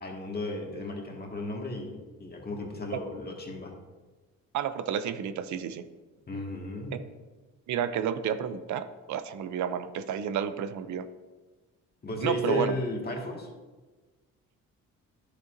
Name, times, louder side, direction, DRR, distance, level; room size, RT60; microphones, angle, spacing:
voice 1, 0.0-3.7 6.3-7.1 12.0-13.5, left 2 dB, 30° left, 0 dB, 1.8 m, -34 dB
voice 2, 4.5-5.9 7.7-11.1 12.2-12.7, right 8 dB, 70° right, 11 dB, 0.6 m, -31 dB
10.5 x 6.8 x 2.6 m, 1.3 s
cardioid pair, 90°, 30 cm